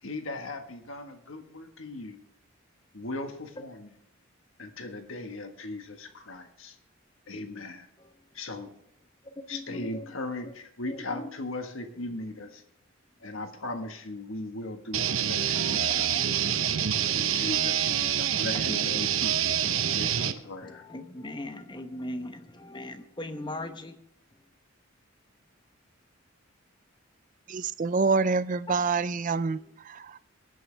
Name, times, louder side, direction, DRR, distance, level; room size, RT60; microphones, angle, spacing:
voice 1, 0.0-2.2 2.9-3.9 4.6-6.8 7.3-7.9 8.3-8.7 9.5-12.6 13.2-16.3 17.1-19.6 19.9-20.8, left 2 dB, 70° left, 1.6 m, -38 dB
voice 2, 1.5-2.0 3.6-3.7 8.0-8.4 9.2-10.1 10.4-10.5 10.9-11.3 12.0-12.3 15.5-16.2 18.5-19.0 20.6-24.0 24.3-24.4 28.7-28.8 29.6-29.7, left 1 dB, 20° left, 1.0 m, -40 dB
sound 1, 14.9-20.3, right 9 dB, 75° right, 0.8 m, -26 dB
voice 3, 27.5-29.6 29.9-30.2, right 4 dB, 40° right, 0.5 m, -26 dB
22.5 x 9.3 x 3.4 m
head